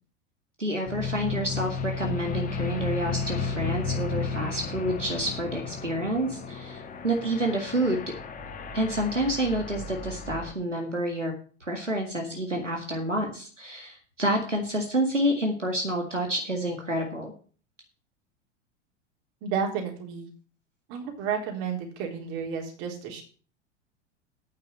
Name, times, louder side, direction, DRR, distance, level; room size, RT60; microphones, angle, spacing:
voice 1, 0.6-8.1 8.7-11.3 11.6-17.3, right 1 dB, 90° right, 2 dB, 2.0 m, -28 dB
sound 1, 0.9-10.5, left 5 dB, 25° left, 1.6 m, -33 dB
voice 2, 19.4-20.3 20.9-23.2, right 7 dB, 45° right, 1 dB, 3.8 m, -31 dB
9.1 x 6.6 x 7.4 m, 0.40 s
figure-of-eight pair, 85°, 36 cm